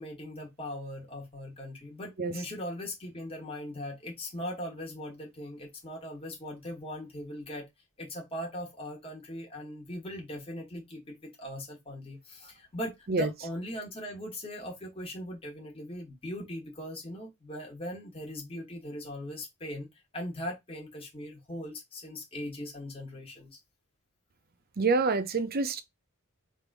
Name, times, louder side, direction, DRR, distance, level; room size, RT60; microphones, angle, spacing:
voice 1, 0.0-7.7 8.0-19.9 20.1-23.6, left 1 dB, 25° left, 1.4 m, -40 dB
voice 2, 24.8-25.8, right 3 dB, 45° right, 0.6 m, -26 dB
3.5 x 2.5 x 4.6 m
head